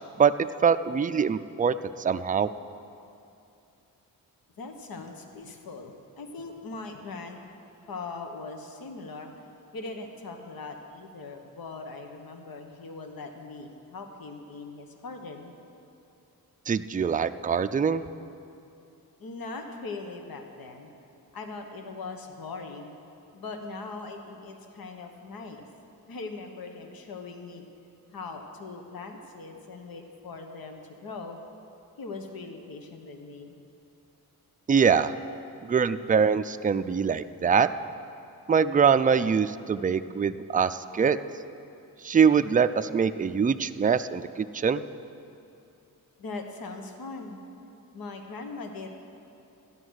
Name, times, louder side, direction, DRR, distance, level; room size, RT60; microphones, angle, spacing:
voice 1, 0.6-2.5 16.7-18.0 34.7-35.1 35.6-37.7 38.5-41.2 42.0-44.8, right 6 dB, 25° right, 11 dB, 0.4 m, -23 dB
voice 2, 4.6-7.4 7.9-9.5 9.7-15.5 19.2-20.9 21.3-22.9 23.3-25.6 26.1-27.6 28.1-31.4 32.0-33.6 46.2-47.4 47.9-48.9, left 3 dB, 70° left, 4 dB, 1.3 m, -40 dB
13.5 x 10.5 x 6.4 m, 2.7 s
cardioid pair, 75°, 37 cm